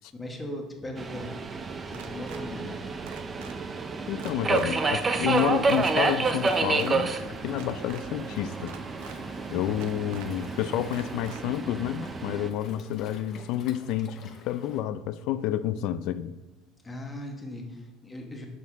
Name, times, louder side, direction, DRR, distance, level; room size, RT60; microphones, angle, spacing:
voice 1, 0.0-1.4 1.9-2.9 9.5-9.6 16.8-18.4, left 1 dB, 10° left, 2 dB, 1.1 m, -39 dB
Subway metro underground, 1.0-12.5, right 4 dB, 20° right, 0.5 m, -30 dB
sound 1, 1.9-2.4 3.1-3.6 4.2-4.7 5.3-5.8 6.4-6.9 7.5-8.0 8.7-9.2 9.8-10.3 10.9-11.4, right 9 dB, 75° right, 0.6 m, -45 dB
voice 2, 4.1-8.7 9.5-16.3, left 12 dB, 60° left, 14 dB, 0.4 m, -30 dB
Waves surf, 4.4-14.8, left 5 dB, 40° left, 0.8 m, -50 dB
6.9 x 6.3 x 3.5 m, 1.1 s
cardioid pair, 155°, 0 cm